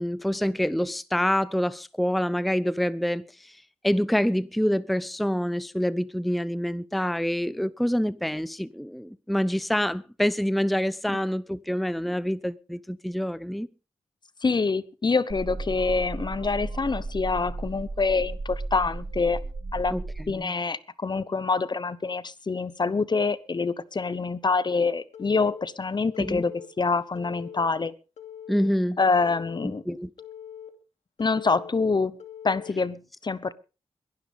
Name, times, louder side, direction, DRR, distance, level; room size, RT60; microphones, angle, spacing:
voice 1, 0.0-13.7 19.9-20.0 20.3-20.5 26.2-26.4 28.5-29.0 29.6-30.1, equal, ahead, 0.6 m, -26 dB
voice 2, 14.4-19.4 19.7-19.9 20.3-26.5 26.8-27.9 29.0-29.8 31.2-32.1 32.4-33.5, left 4 dB, 40° left, 1.0 m, -26 dB
sound 1, 15.3-20.3, right 2 dB, 55° right, 2.1 m, -34 dB
Telephone, 25.1-25.6 26.1-26.7 27.1-27.7 28.2-28.7 29.2-29.7 30.2-30.7 31.2-31.7 32.2-32.7, left 9 dB, 85° left, 2.6 m, -42 dB
22.0 x 11.5 x 3.5 m
cardioid pair, 60°, 11 cm